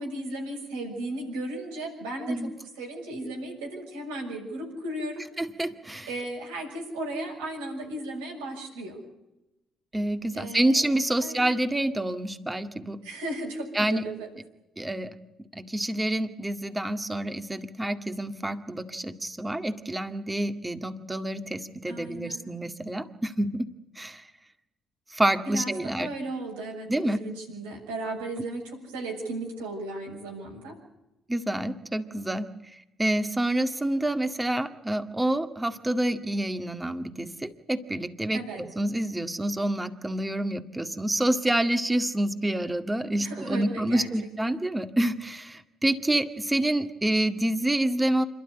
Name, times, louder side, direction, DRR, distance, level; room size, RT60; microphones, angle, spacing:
voice 1, 0.0-2.5 2.8-5.3 6.1-9.0 10.3-10.8 11.2-11.5 13.0-14.3 21.9-22.5 25.4-30.8 38.3-38.6 43.2-44.1 44.5-44.6, right 1 dB, 85° right, -1 dB, 6.8 m, -35 dB
voice 2, 5.4-6.1 9.9-13.0 13.7-14.0 14.8-15.2 15.6-23.6 24.0-24.3 25.1-26.1 26.9-27.2 31.3-32.5 33.0-38.4 38.8-48.2, right 1 dB, 15° right, 8 dB, 2.0 m, -27 dB
27.0 x 12.5 x 10.0 m, 0.95 s
hypercardioid pair, 50°, 0 cm